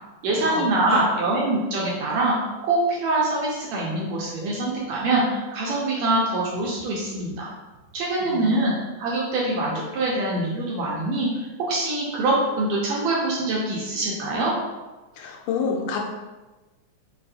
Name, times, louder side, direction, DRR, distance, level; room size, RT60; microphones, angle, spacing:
voice 1, 0.2-2.3 2.6-7.5 7.9-14.5, right 2 dB, 75° right, -4 dB, 1.6 m, -24 dB
voice 2, 8.2-8.8 15.2-16.0, left 5 dB, 90° left, 1 dB, 2.1 m, -28 dB
5.0 x 2.3 x 2.7 m, 1.2 s
omnidirectional pair, 3.6 m